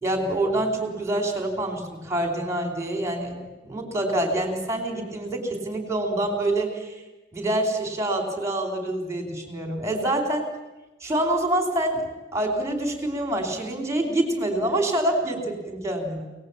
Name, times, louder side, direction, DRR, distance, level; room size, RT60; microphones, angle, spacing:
voice 1, 0.0-3.4 3.6-7.0 7.3-10.5 11.0-16.2, right 1 dB, 15° right, 3 dB, 4.3 m, -26 dB
27.0 x 19.5 x 8.9 m, 1.1 s
head